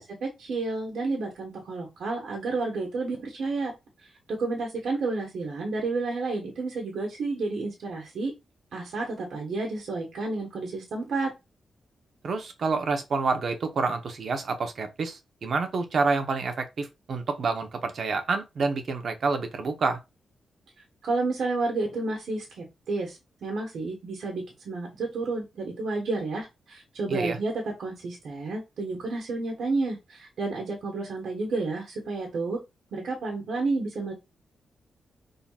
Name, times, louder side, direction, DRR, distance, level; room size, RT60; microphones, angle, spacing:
voice 1, 0.0-3.7 4.4-8.3 8.7-11.3 21.0-32.6 32.9-34.1, right 3 dB, 70° right, 1.5 m, -31 dB
voice 2, 12.2-20.0 27.1-27.4, right 4 dB, 50° right, 1.0 m, -28 dB
5.7 x 3.9 x 2.4 m
wide cardioid pair, 155°, 0 cm